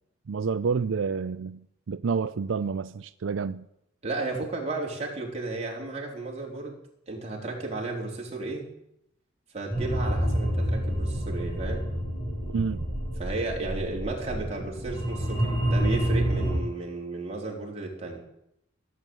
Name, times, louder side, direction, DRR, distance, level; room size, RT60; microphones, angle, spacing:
voice 1, 0.3-3.7 12.5-12.8, right 5 dB, 85° right, 0.5 m, -29 dB
voice 2, 4.0-6.8 7.1-8.6 9.5-11.8 13.2-18.2, right 3 dB, 35° right, 3.8 m, -33 dB
sound 1, 9.7-16.6, equal, 25° left, 5.5 m, -28 dB
16.0 x 8.0 x 9.0 m
head